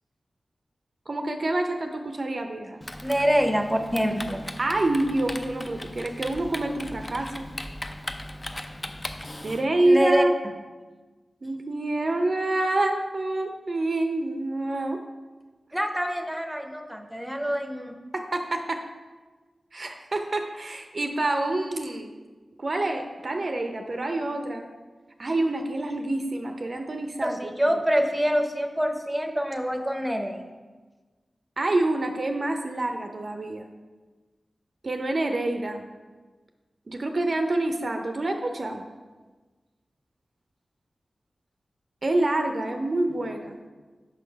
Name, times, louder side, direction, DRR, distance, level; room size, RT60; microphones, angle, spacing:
voice 1, 1.1-2.8 4.6-7.4 9.4-10.3 11.4-15.0 18.1-18.8 19.7-22.1 22.6-24.7 25.2-27.5 31.6-33.7 34.8-35.9 36.9-38.8 42.0-43.6, right 2 dB, 50° right, 5 dB, 0.5 m, -27 dB
Typing, 2.8-9.6, left 1 dB, 30° left, 0.4 m, -38 dB
voice 2, 3.0-4.4 9.8-10.2 15.7-18.0 27.2-30.4, equal, 10° right, 4 dB, 0.7 m, -25 dB
6.0 x 3.9 x 5.1 m, 1.3 s
cardioid pair, 55°, 0 cm